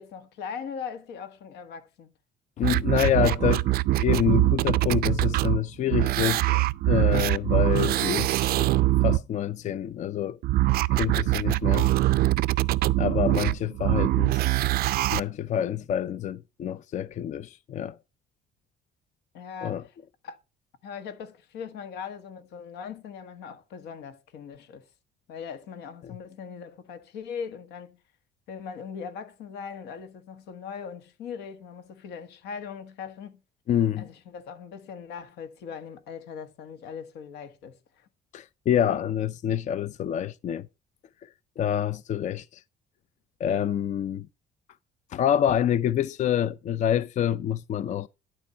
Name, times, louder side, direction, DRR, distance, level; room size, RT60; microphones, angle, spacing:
voice 1, 0.0-2.1 19.3-19.9 20.2-20.4 20.8-24.9 25.3-28.0 28.5-33.4 34.0-38.1, left 6 dB, 85° left, 1.5 m, -40 dB
voice 2, 2.6-8.7 9.0-10.4 10.9-11.9 13.0-14.6 15.1-18.0 19.6-19.8 26.0-26.2 33.7-34.1 38.3-40.7 41.2-41.3 41.6-42.6 43.4-44.3 45.1-48.1, left 10 dB, 45° left, 0.4 m, -27 dB
sound 1, 2.6-5.6 5.9-9.2 10.4-15.2 15.9-16.0, right 17 dB, 65° right, 0.4 m, -23 dB
11.5 x 4.5 x 5.4 m
cardioid pair, 110°, 17 cm